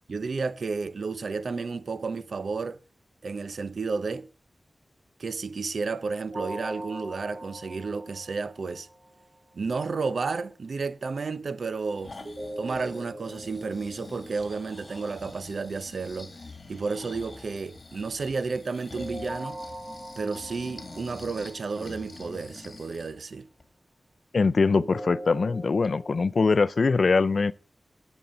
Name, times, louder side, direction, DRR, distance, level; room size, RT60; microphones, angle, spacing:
voice 1, 0.1-2.8 3.2-4.3 5.2-8.9 9.5-12.2 12.6-16.3 16.7-19.6 20.2-23.5, right 4 dB, 80° right, 0.6 m, -32 dB
sound 1, 6.3-9.2 12.2-15.2 19.0-22.2 24.7-26.2, right 1 dB, 55° right, 4.0 m, -41 dB
Breathing, 11.7-23.2 23.6-23.7, left 3 dB, 50° left, 2.0 m, -46 dB
voice 2, 24.3-27.5, left 4 dB, 70° left, 0.5 m, -22 dB
19.5 x 7.1 x 3.9 m
wide cardioid pair, 70°, 0 cm